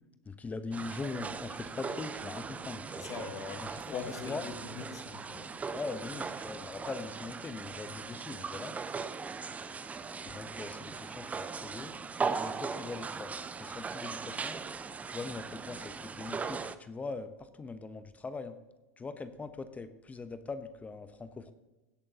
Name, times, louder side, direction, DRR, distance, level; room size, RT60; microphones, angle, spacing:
voice 1, 0.3-3.1 3.6-3.8 4.2-4.4 5.7-8.8 10.2-11.9 12.4-13.3 13.6-14.6 15.1-18.6 19.0-21.5, left 4 dB, 15° left, 11 dB, 0.9 m, -41 dB
sound 1, 0.7-16.7, right 5 dB, 15° right, 0.6 m, -39 dB
voice 2, 3.0-5.5, left 5 dB, 40° left, 7 dB, 1.4 m, -42 dB
16.5 x 8.5 x 2.9 m, 1.1 s
hypercardioid pair, 95°, 8 cm